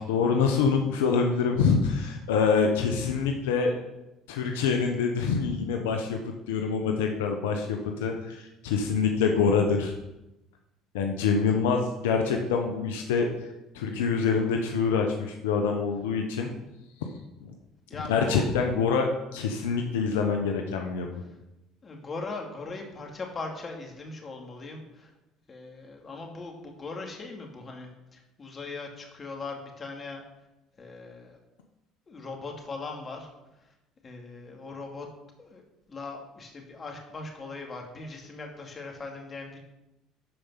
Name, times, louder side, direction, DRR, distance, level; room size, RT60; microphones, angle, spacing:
voice 1, 0.0-3.8 4.3-9.9 10.9-13.3 13.7-16.5 18.1-21.1, left 5 dB, 90° left, 3 dB, 1.0 m, -25 dB
voice 2, 17.9-18.5 21.8-25.1 25.5-30.2 30.8-31.4 32.1-33.3 34.0-35.1 35.4-35.6 35.9-39.6, left 3 dB, 35° left, 1 dB, 2.6 m, -39 dB
12.0 x 5.1 x 5.7 m, 0.94 s
supercardioid pair, 80°, 0 cm